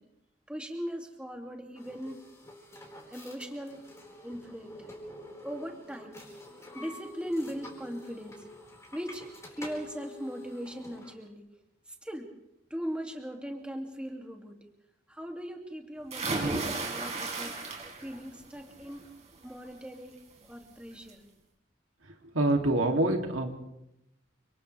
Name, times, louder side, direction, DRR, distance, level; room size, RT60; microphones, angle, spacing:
voice 1, 0.5-2.2 3.1-3.8 4.2-4.9 5.4-6.2 6.7-8.4 8.9-9.3 9.6-11.4 12.0-12.3 12.7-14.6 15.1-17.5 18.0-19.0 19.4-20.2 20.5-21.2, equal, 5° right, 1 dB, 2.5 m, -39 dB
sound 1, 1.7-11.2, left 1 dB, 15° left, 4.9 m, -48 dB
sound 2, 16.1-18.2 18.6-19.0 20.4-20.5 20.9-21.0, right 3 dB, 35° right, 4.2 m, -33 dB
voice 2, 22.3-23.5, right 1 dB, 90° right, 2 dB, 2.9 m, -25 dB
29.5 x 26.5 x 3.4 m, 0.83 s
head